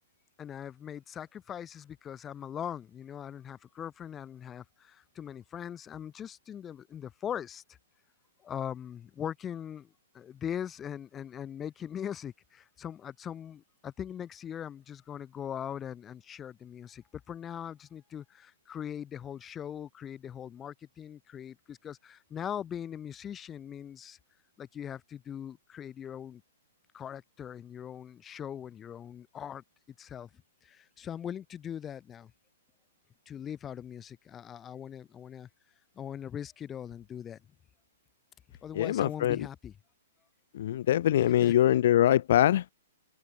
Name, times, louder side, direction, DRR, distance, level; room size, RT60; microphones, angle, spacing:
voice 1, 0.4-7.6 8.4-24.2 24.6-26.4 26.9-29.6 30.0-30.3 30.6-32.3 33.3-35.5 35.9-37.4 38.6-39.7 41.4-41.6, left 9 dB, 20° left, 3.0 m, -40 dB
voice 2, 38.7-39.4 40.5-42.7, left 12 dB, 55° left, 0.6 m, -23 dB
figure-of-eight pair, 115°, 0 cm